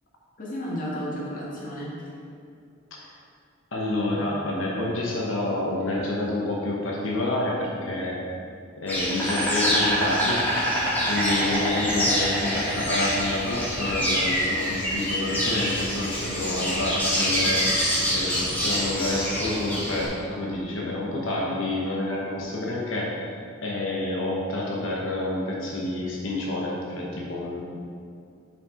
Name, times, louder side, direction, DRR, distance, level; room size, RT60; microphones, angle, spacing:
voice 1, 0.4-2.0 10.8-11.0, equal, 45° left, -6 dB, 1.8 m, -33 dB
voice 2, 3.7-8.4 8.8-10.5 11.1-23.3 23.6-27.6, left 2 dB, 80° left, -4 dB, 1.1 m, -28 dB
Insect, 8.9-20.1, equal, 10° left, 1.9 m, -25 dB
7.4 x 5.5 x 4.3 m, 2.3 s
head